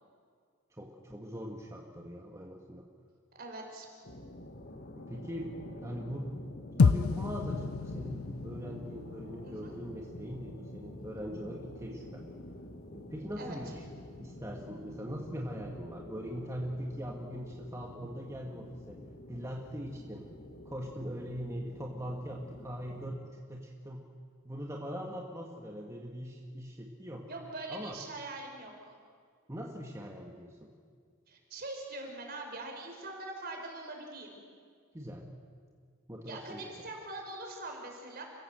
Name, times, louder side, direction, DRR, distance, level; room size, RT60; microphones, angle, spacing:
voice 1, 0.7-2.8 5.0-5.5 5.8-6.4 6.8-12.2 12.9-13.8 14.2-19.0 19.3-20.3 20.7-24.1 24.4-27.3 27.7-28.0 29.5-30.7 34.9-35.3 36.1-36.6, equal, 15° right, -1 dB, 1.8 m, -41 dB
voice 2, 3.3-3.9 9.4-9.7 13.4-13.6 27.3-28.9 31.3-34.4 36.3-38.2, right 2 dB, 50° right, 2 dB, 4.9 m, -43 dB
sound 1, 4.0-23.2, left 1 dB, 50° left, 1.7 m, -48 dB
sound 2, 6.8-11.1, left 4 dB, 85° left, 0.5 m, -31 dB
29.5 x 16.0 x 7.8 m, 2.1 s
head